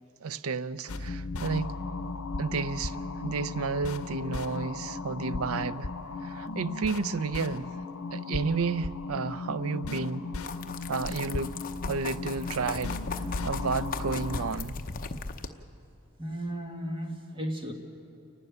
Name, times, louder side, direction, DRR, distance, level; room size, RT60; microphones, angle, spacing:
voice 1, 0.2-1.7 2.4-5.9 6.2-7.7 8.1-10.3 10.9-11.5 11.9-13.0 13.4-14.8, right 4 dB, 80° right, 0.6 m, -31 dB
sound 1, 0.9-14.6, left 3 dB, 80° left, 0.8 m, -36 dB
sound 2, 10.4-15.5, left 4 dB, 40° left, 0.8 m, -38 dB
voice 2, 16.2-17.7, equal, 25° right, 1.8 m, -34 dB
29.0 x 12.0 x 9.4 m
head